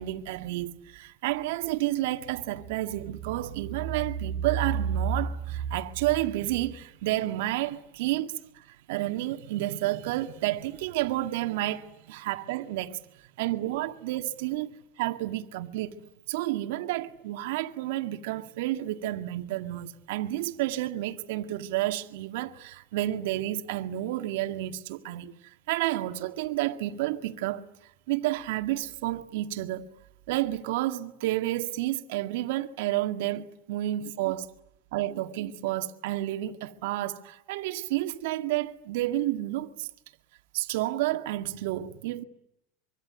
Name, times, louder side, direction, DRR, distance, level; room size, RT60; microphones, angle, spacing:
voice 1, 0.0-13.0 13.4-14.7 15.0-16.0 16.3-27.6 28.1-29.9 30.3-34.5 34.9-39.9 40.5-42.2, right 14 dB, 70° right, 1.9 m, -30 dB
25.0 x 24.5 x 9.4 m
hypercardioid pair, 100°, 0 cm